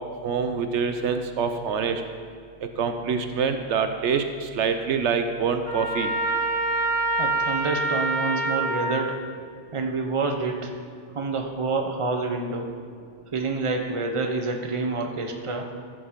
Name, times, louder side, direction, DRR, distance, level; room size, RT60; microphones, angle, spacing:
voice 1, 0.2-2.0 2.8-6.1, right 6 dB, 80° right, 7 dB, 1.0 m, -25 dB
Trumpet, 5.6-9.0, right 2 dB, 25° left, 1.6 m, -26 dB
voice 2, 7.2-9.2 9.7-10.7 11.1-12.7 13.3-15.6, right 3 dB, 30° right, 3 dB, 0.9 m, -27 dB
14.0 x 5.8 x 5.1 m, 2.2 s
omnidirectional pair, 1.2 m